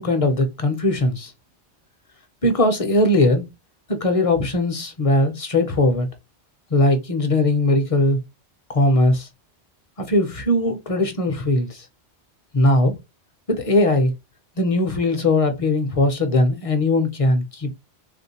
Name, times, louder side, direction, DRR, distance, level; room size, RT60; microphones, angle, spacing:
voice 1, 0.0-1.3 2.4-3.4 3.9-6.1 6.7-8.2 8.7-9.3 10.0-11.9 12.5-12.9 13.5-14.1 14.6-17.8, left 1 dB, 45° left, 0.5 m, -19 dB
3.5 x 2.5 x 2.7 m
omnidirectional pair, 1.2 m